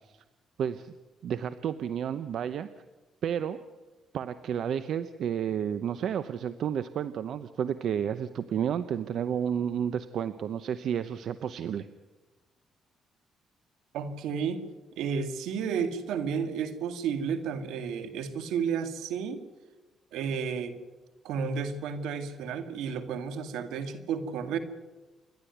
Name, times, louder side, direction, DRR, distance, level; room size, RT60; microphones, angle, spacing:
voice 1, 0.6-0.9 1.2-2.7 3.2-3.6 4.1-11.9, right 8 dB, 70° right, 12 dB, 0.9 m, -31 dB
voice 2, 13.9-14.7 15.0-19.5 20.1-20.8 21.2-24.6, right 6 dB, 90° right, 9 dB, 2.1 m, -32 dB
28.5 x 12.0 x 9.3 m, 1.2 s
cardioid pair, 90°, 0 cm